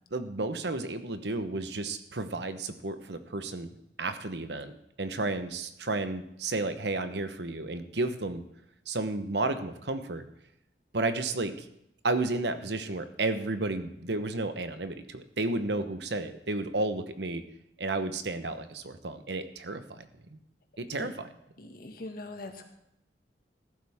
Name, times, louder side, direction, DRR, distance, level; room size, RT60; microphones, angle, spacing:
voice 1, 0.1-3.7 4.0-8.4 8.9-10.2 10.9-11.7 12.0-17.4 17.8-20.1 20.3-20.4 20.8-21.3, right 2 dB, 70° right, 10 dB, 1.0 m, -32 dB
voice 2, 21.6-22.7, left 2 dB, 55° left, 4 dB, 1.8 m, -42 dB
14.5 x 12.0 x 3.6 m, 0.80 s
head